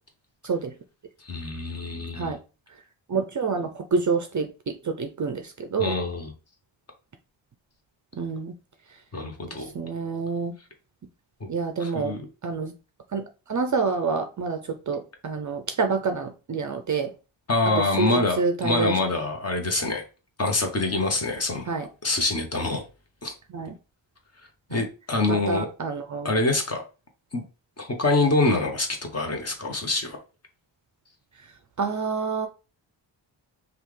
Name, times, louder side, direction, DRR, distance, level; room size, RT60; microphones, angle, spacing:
voice 1, 1.2-2.3 5.8-6.3 9.1-9.7 11.4-11.5 11.8-12.3 17.5-20.0 20.4-21.7 22.0-22.8 23.2-23.3 24.7-25.7 26.2-26.8 27.3-27.4 27.8-28.9 29.1-30.2, left 2 dB, 35° left, 0.9 m, -25 dB
voice 2, 3.1-5.9 8.1-8.5 9.7-10.6 11.5-12.1 12.4-12.7 13.1-13.2 13.5-17.1 18.0-18.9 21.7-21.9 23.5-23.7 24.7-24.8 25.3-26.3 31.8-32.5, right 4 dB, 40° right, 0.4 m, -27 dB
5.5 x 2.4 x 3.2 m
wide cardioid pair, 135°, 47 cm